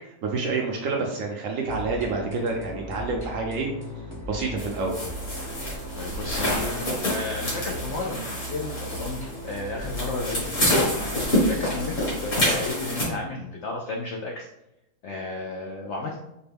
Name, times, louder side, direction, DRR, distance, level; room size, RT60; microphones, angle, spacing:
voice 1, 0.2-3.7 4.3-5.0, right 4 dB, 70° right, 1 dB, 0.8 m, -28 dB
sound 1, 1.6-12.5, equal, 35° left, 0.4 m, -38 dB
sound 2, 4.6-13.0, left 1 dB, 50° left, 1.8 m, -27 dB
voice 2, 6.0-14.5 15.0-16.2, left 2 dB, 75° left, 0 dB, 0.6 m, -33 dB
4.3 x 2.2 x 3.4 m, 0.87 s
omnidirectional pair, 1.8 m